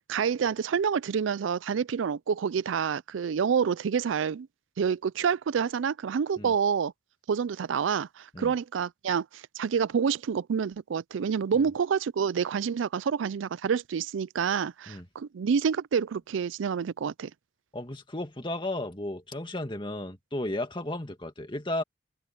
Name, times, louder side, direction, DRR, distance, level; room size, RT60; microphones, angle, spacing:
voice 1, 0.1-4.5 4.8-6.9 7.3-17.3, right 6 dB, 90° right, 0.4 m, -28 dB
voice 2, 17.7-21.8, left 1 dB, 25° left, 2.1 m, -34 dB
head